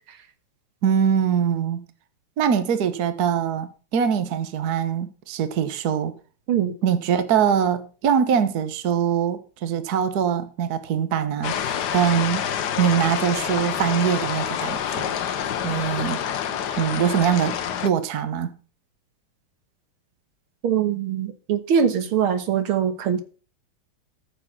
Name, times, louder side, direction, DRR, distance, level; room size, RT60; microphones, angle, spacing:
voice 1, 0.8-1.8 2.4-6.1 6.8-12.5 12.8-15.1 15.6-16.2 16.8-17.6 17.8-18.5, right 8 dB, 50° right, 1.5 m, -23 dB
sound 1, 11.4-17.9, left 9 dB, 60° left, 1.3 m, -27 dB
voice 2, 20.6-23.2, right 8 dB, 80° right, 2.1 m, -22 dB
14.0 x 6.8 x 5.9 m
omnidirectional pair, 2.3 m